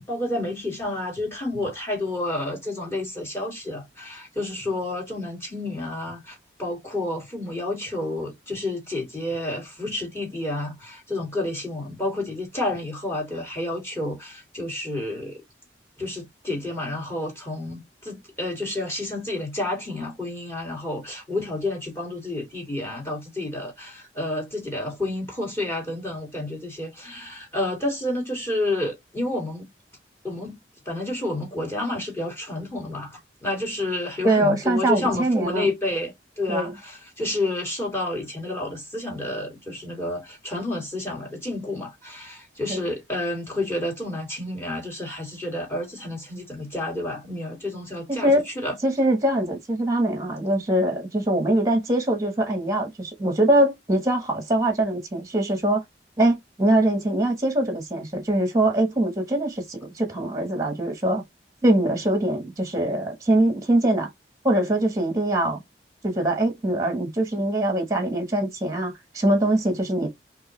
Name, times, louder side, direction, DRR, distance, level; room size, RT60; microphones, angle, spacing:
voice 1, 0.1-15.4 16.0-29.7 30.2-30.6 30.9-48.7, left 2 dB, 15° left, 2.1 m, -30 dB
voice 2, 34.2-35.7 36.5-36.7 42.7-42.8 48.1-48.5 48.8-55.8 56.2-61.2 61.6-64.1 64.4-65.6 66.0-70.1, right 1 dB, 20° right, 1.1 m, -23 dB
4.6 x 3.0 x 3.1 m
head